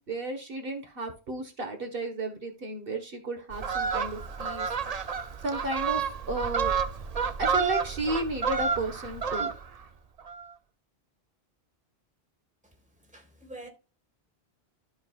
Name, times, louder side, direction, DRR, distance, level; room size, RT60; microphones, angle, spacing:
voice 1, 0.0-4.7 5.4-6.7 7.4-9.5, right 2 dB, 60° right, 1.7 m, -33 dB
Fowl, 3.5-9.8 10.2-10.4, right 6 dB, 45° right, 0.7 m, -30 dB
voice 2, 13.1-13.7, right 1 dB, 5° right, 2.0 m, -45 dB
14.0 x 4.7 x 2.4 m
omnidirectional pair, 1.1 m